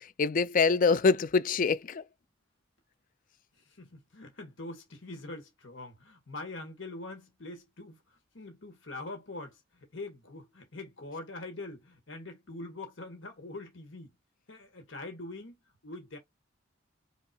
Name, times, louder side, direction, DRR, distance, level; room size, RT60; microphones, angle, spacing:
voice 1, 0.0-2.0, left 4 dB, 45° left, 0.4 m, -25 dB
voice 2, 3.6-14.1 14.5-16.2, left 2 dB, 70° left, 1.5 m, -44 dB
5.5 x 2.5 x 2.3 m
head